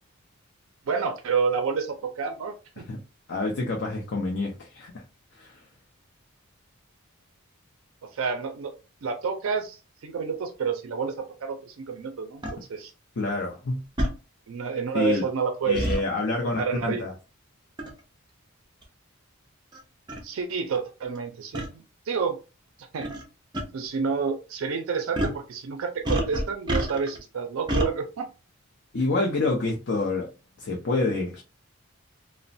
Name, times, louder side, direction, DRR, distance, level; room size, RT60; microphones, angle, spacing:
voice 1, 0.9-2.9 8.0-8.7 9.0-11.1 11.4-12.9 14.5-15.9 16.6-17.0 20.2-22.4 22.8-23.1 23.7-28.3, right 5 dB, 70° right, 0.4 m, -29 dB
voice 2, 3.3-5.0 5.3-5.6 13.2-13.8 14.9-15.2 15.6-17.1 28.9-30.3 30.6-31.4, left 2 dB, 55° left, 0.5 m, -27 dB
sound 1, 12.4-12.6 14.0-14.2 15.7-16.0 17.8-18.0 18.8-18.9 19.7-19.8 20.1-20.2 21.5-21.7 23.0-23.2 23.5-23.6 25.1-25.4 26.0-27.2 27.7-27.9, equal, 20° right, 0.5 m, -27 dB
3.0 x 2.0 x 2.6 m
head